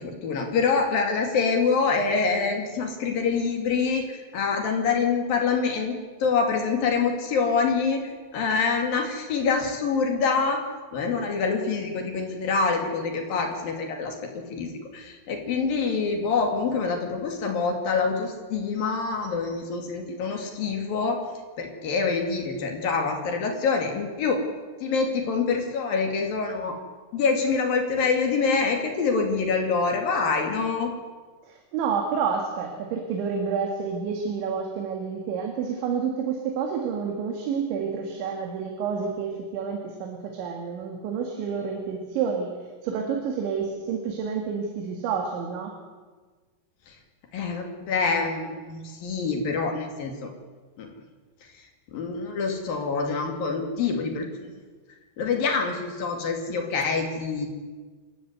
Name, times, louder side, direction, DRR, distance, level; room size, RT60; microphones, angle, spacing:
voice 1, 0.0-10.6 10.9-21.2 21.6-24.4 24.8-26.8 27.1-30.9 46.9-47.0 47.3-50.3 50.8-50.9 51.4-51.5 51.9-54.3 55.2-57.5, left 4 dB, 50° left, 3 dB, 3.8 m, -26 dB
voice 2, 31.5-42.5 42.8-45.7, right 6 dB, 70° right, 2 dB, 4.1 m, -29 dB
27.5 x 14.0 x 8.1 m, 1.4 s
omnidirectional pair, 5.7 m